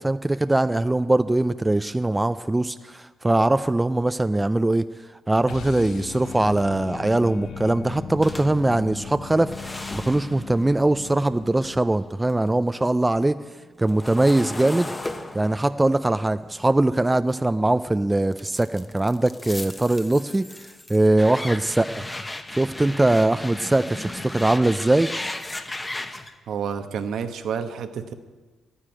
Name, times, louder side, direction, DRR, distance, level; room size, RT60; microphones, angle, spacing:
voice 1, 0.0-4.9 5.3-9.5 9.9-13.4 13.8-14.9 15.3-20.5 20.9-22.0 22.5-25.1, right 2 dB, 15° right, 12 dB, 0.4 m, -21 dB
sound 1, 5.4-11.9, left 8 dB, 65° left, 0.3 m, -38 dB
sound 2, 8.2-12.5 12.8-17.7 18.3-26.3, left 2 dB, 15° left, 1.0 m, -36 dB
voice 2, 26.5-28.1, right 7 dB, 70° right, 8 dB, 1.1 m, -29 dB
11.5 x 9.8 x 8.9 m, 1.3 s
cardioid pair, 90°, 0 cm